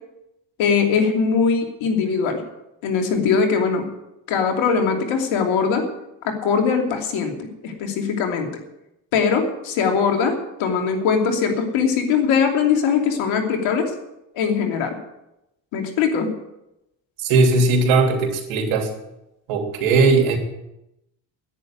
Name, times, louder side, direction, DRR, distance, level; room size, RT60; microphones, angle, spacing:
voice 1, 0.6-2.4 2.8-3.9 4.3-5.9 6.2-8.5 9.1-13.9 14.3-15.0 15.7-16.3, left 6 dB, 70° left, 4 dB, 3.0 m, -21 dB
voice 2, 17.2-18.9 19.5-20.4, right 3 dB, 75° right, 4 dB, 3.1 m, -18 dB
10.5 x 9.8 x 9.1 m, 0.89 s
supercardioid pair, 90°, 48 cm